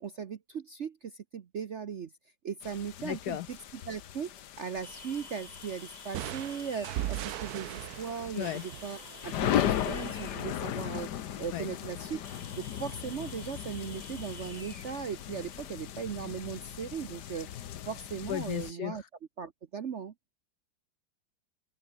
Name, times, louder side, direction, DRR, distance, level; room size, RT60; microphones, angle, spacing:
voice 1, 0.0-2.1 2.4-4.3 4.6-11.1 11.4-12.2 12.5-17.5 17.9-19.0 19.4-20.1, right 6 dB, 55° right, 0.7 m, -38 dB
sound 1, 2.6-18.7, left 10 dB, 60° left, 1.4 m, -37 dB
voice 2, 3.0-3.5 8.4-8.6 11.5-11.7 18.3-19.0, left 13 dB, 85° left, 0.8 m, -34 dB
sound 2, 4.8-15.6, left 1 dB, 20° left, 5.0 m, -52 dB
sound 3, 6.1-9.8, right 14 dB, 90° right, 0.8 m, -38 dB
open air
omnidirectional pair, 2.3 m